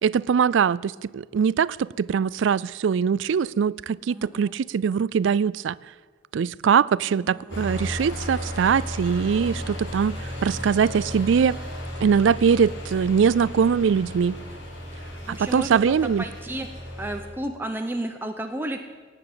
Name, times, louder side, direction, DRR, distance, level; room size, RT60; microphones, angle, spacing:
voice 1, 0.0-5.8 6.3-11.6 12.0-14.4 15.3-16.2, right 6 dB, 75° right, 22 dB, 0.4 m, -22 dB
voice 2, 4.1-4.5 7.3-7.6 15.2-16.7 17.0-18.8, right 1 dB, 10° right, 4 dB, 0.8 m, -32 dB
sound 1, 7.5-17.2, equal, 70° left, 5.1 m, -34 dB
17.5 x 7.9 x 8.7 m, 1.4 s
head